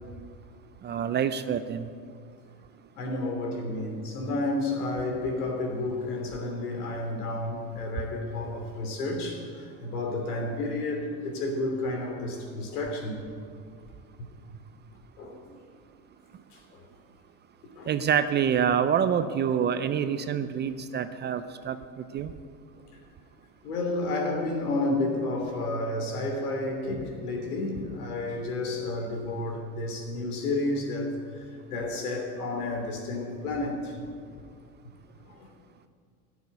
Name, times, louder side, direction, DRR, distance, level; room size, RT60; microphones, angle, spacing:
voice 1, 0.8-1.9 17.9-22.3, right 8 dB, 25° right, 11 dB, 0.4 m, -27 dB
voice 2, 2.9-13.1 15.2-15.6 16.7-16.8 17.8-17.9 23.6-31.1 31.7-34.0 34.3-34.4 35.3-35.5, left 2 dB, 85° left, 2 dB, 3.0 m, -31 dB
12.0 x 7.1 x 9.6 m, 2.1 s
hypercardioid pair, 105°, 44 cm